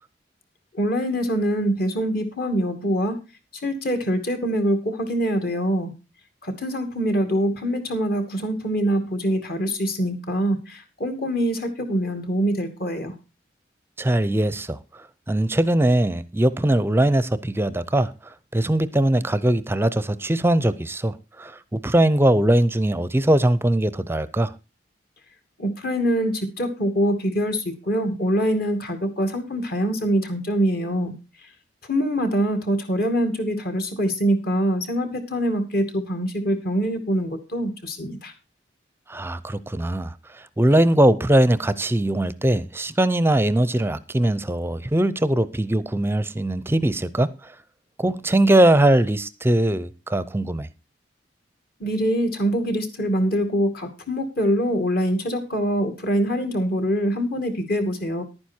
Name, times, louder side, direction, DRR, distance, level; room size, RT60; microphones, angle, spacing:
voice 1, 0.7-3.2 3.6-5.9 6.4-13.1 25.6-31.1 31.9-38.3 51.8-58.2, equal, 55° left, 2.3 m, -24 dB
voice 2, 14.0-14.8 15.3-18.1 18.5-24.5 39.1-40.1 40.6-47.3 48.0-50.7, right 1 dB, 15° right, 0.6 m, -20 dB
11.0 x 9.5 x 4.4 m
head